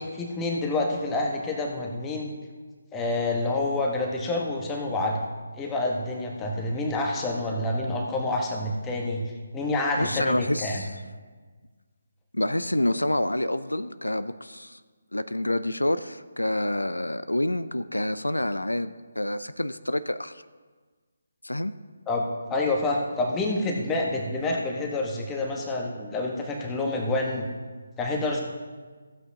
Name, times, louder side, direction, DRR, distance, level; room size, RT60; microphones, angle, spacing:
voice 1, 0.0-2.3 2.9-5.2 5.6-9.2 9.5-10.8 22.1-27.5 28.0-28.4, left 2 dB, 10° left, 0 dB, 1.2 m, -28 dB
voice 2, 10.0-10.9 12.3-14.8 15.1-20.4 21.4-21.7, left 1 dB, 85° left, 13 dB, 0.4 m, -28 dB
15.0 x 8.0 x 2.8 m, 1.4 s
figure-of-eight pair, 150°, 0 cm